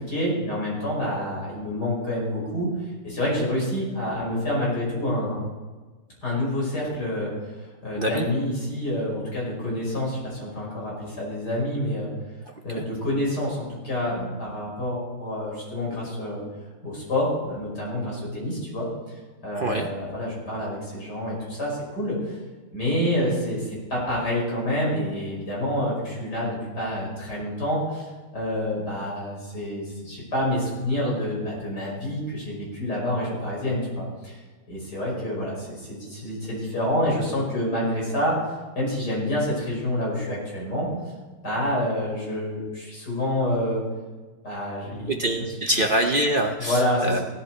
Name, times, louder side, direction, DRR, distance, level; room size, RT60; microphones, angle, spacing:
voice 1, 0.0-2.7 3.0-5.4 6.2-7.3 7.8-12.1 12.6-16.4 16.8-18.9 19.4-22.4 22.7-34.4 34.7-38.4 38.8-40.9 41.4-43.8 44.4-45.2 46.6-47.2, left 1 dB, 55° left, -4 dB, 5.9 m, -27 dB
voice 2, 8.0-8.3 12.5-12.8 19.5-19.9 45.1-47.2, right 1 dB, 55° right, 4 dB, 0.6 m, -25 dB
17.0 x 11.0 x 4.5 m, 1.3 s
omnidirectional pair, 2.1 m